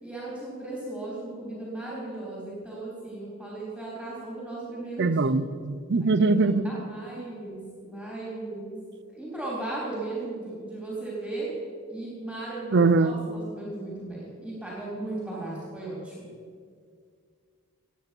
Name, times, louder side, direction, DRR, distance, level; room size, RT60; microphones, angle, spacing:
voice 1, 0.0-5.3 6.0-6.1 6.4-8.8 9.1-11.5 11.9-16.3, right 2 dB, ahead, -6 dB, 3.8 m, -36 dB
voice 2, 5.0-6.6 12.7-13.2, right 3 dB, 50° right, 14 dB, 0.6 m, -22 dB
16.5 x 9.4 x 6.2 m, 2.1 s
head